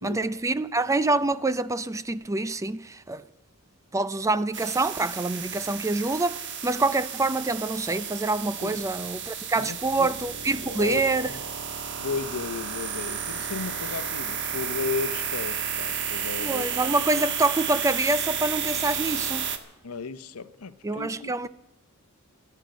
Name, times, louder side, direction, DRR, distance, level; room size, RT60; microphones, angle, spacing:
voice 1, 0.0-3.2 3.9-11.3 16.4-19.5 20.8-21.5, right 2 dB, 15° right, 0.4 m, -26 dB
sound 1, 4.5-19.6, right 7 dB, 55° right, 1.5 m, -32 dB
voice 2, 9.6-10.1 10.7-11.4 12.0-16.9 19.8-21.1 21.4-21.5, left 4 dB, 85° left, 0.8 m, -34 dB
27.5 x 9.5 x 5.2 m
head